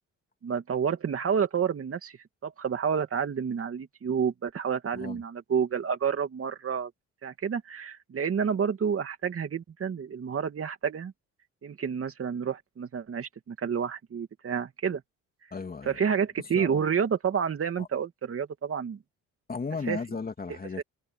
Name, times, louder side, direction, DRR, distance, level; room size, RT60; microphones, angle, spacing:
voice 1, 0.4-6.9 7.2-11.1 11.6-15.0 15.9-19.0 19.9-20.0 20.5-20.8, right 7 dB, 50° right, 2.6 m, -29 dB
voice 2, 15.5-16.0 16.5-16.8 17.8-17.9 19.5-20.8, left 4 dB, 30° left, 2.8 m, -35 dB
cardioid pair, 90°, 30 cm